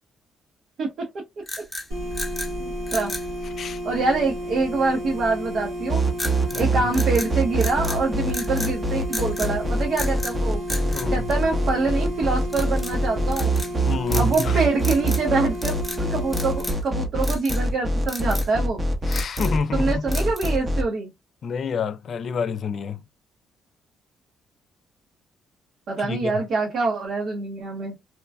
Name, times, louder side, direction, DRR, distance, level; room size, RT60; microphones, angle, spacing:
sound 1, 1.4-2.5 2.9-3.3 6.2-6.7 6.9-8.0 8.3-8.7 9.1-9.5 9.9-10.4 10.7-11.9 12.5-13.0 13.3-13.7 14.1-14.5 14.8-15.3 15.5-16.0 16.3-16.9 17.2-17.6 18.1-18.5 18.9-19.6 20.1-20.6, left 1 dB, 5° left, 0.8 m, -34 dB
sound 2, 1.9-16.7, equal, 90° right, 1.1 m, -32 dB
voice 1, 2.6-3.1 3.8-6.0 6.5-10.6 11.1-13.5 14.1-15.7 16.1-18.8 19.7-21.1 25.9-27.9, right 3 dB, 65° right, 0.9 m, -25 dB
sound 3, 5.9-20.8, right 1 dB, 25° right, 0.6 m, -24 dB
voice 2, 6.5-6.9 10.9-11.3 13.8-14.6 19.1-20.1 21.4-23.0 26.0-26.5, left 5 dB, 55° left, 0.3 m, -28 dB
3.0 x 2.2 x 2.2 m
cardioid pair, 90°, 0 cm